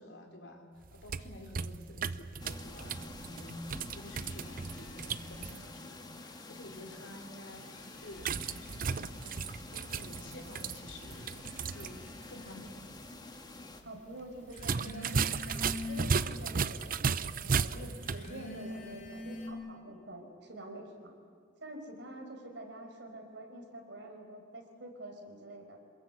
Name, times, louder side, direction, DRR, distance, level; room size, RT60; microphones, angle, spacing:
voice 1, 0.0-3.7 3.9-11.4 11.7-12.0 12.3-12.9, left 1 dB, 80° left, 3 dB, 4.2 m, -50 dB
sound 1, 0.8-5.6 8.2-11.9 12.2-12.3 14.5-18.3, right 5 dB, 50° right, 0.7 m, -35 dB
sound 2, 2.4-13.8, left 2 dB, 25° left, 1.8 m, -49 dB
sound 3, 2.8-5.9 6.2-6.9 7.4-19.5, left 2 dB, 45° left, 4.1 m, -47 dB
voice 2, 13.8-21.1 21.6-25.8, right 1 dB, 70° right, 3 dB, 5.0 m, -47 dB
27.5 x 21.0 x 8.4 m, 2.2 s
head